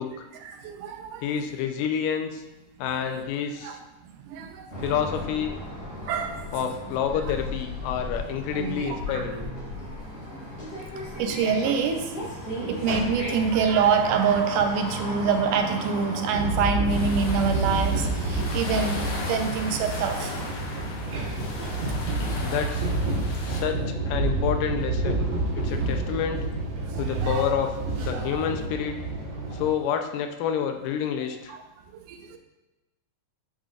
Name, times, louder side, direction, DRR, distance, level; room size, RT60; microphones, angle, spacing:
voice 1, 0.4-1.3 3.6-3.8 4.2-4.8 6.1-6.4 8.9-9.2 11.2-12.1 12.7-20.3 27.0-27.5 28.1-28.4 29.5-29.6 31.5-31.6 31.9-32.4, right 6 dB, 80° right, 5 dB, 2.1 m, -26 dB
voice 2, 1.2-2.4 2.8-3.8 4.8-5.5 6.5-9.4 20.4-20.5 22.4-22.9 23.5-23.8 24.1-25.2 25.5-26.5 27.0-27.7 28.0-29.0 29.5-31.5, left 8 dB, 90° left, 6 dB, 2.2 m, -28 dB
sound 1, 4.7-22.4, equal, 35° left, 2.8 m, -36 dB
sound 2, 16.3-29.7, right 2 dB, 60° right, 1.9 m, -29 dB
sound 3, 16.9-23.6, left 2 dB, 60° left, 1.5 m, -36 dB
10.0 x 5.1 x 2.4 m, 1.0 s
omnidirectional pair, 3.7 m